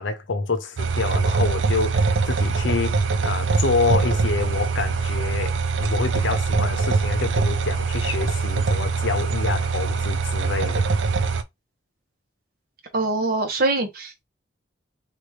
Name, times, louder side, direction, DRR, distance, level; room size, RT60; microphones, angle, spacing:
voice 1, 0.0-10.9, left 3 dB, 85° left, 0.7 m, -27 dB
sound 1, 0.8-11.4, right 4 dB, 75° right, 0.4 m, -23 dB
voice 2, 12.9-14.2, right 2 dB, 50° right, 0.9 m, -23 dB
2.9 x 2.4 x 3.2 m
head